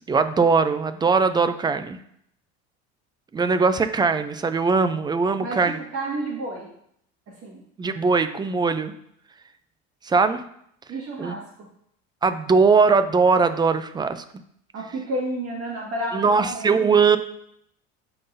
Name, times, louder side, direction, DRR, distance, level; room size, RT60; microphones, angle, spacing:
voice 1, 0.0-2.0 3.3-5.8 7.8-8.9 10.0-10.4 11.2-11.3 12.2-14.2 16.1-17.2, right 4 dB, 15° right, 11 dB, 0.4 m, -20 dB
voice 2, 5.4-6.7 7.4-7.6 10.9-11.7 14.7-16.9, right 1 dB, 50° right, -3 dB, 1.8 m, -31 dB
11.5 x 3.9 x 2.6 m, 0.70 s
supercardioid pair, 110°, 30 cm